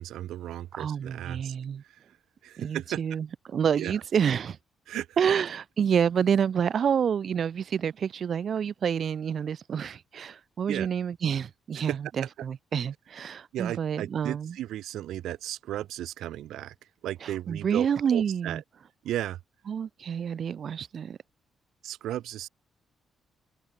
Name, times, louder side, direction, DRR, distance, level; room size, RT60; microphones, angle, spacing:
voice 1, 0.0-1.5 1.8-2.0 2.4-3.0 3.8-3.9 4.9-5.1 10.7-10.9 11.9-12.3 13.5-16.7 17.0-18.6 19.0-19.4 21.8-22.5, right 13 dB, 90° right, 1.3 m, -35 dB
voice 2, 0.7-1.8 2.6-4.6 5.2-14.6 17.2-18.6 19.7-21.2, right 7 dB, 40° right, 1.7 m, -28 dB
cardioid pair, 180°, 0 cm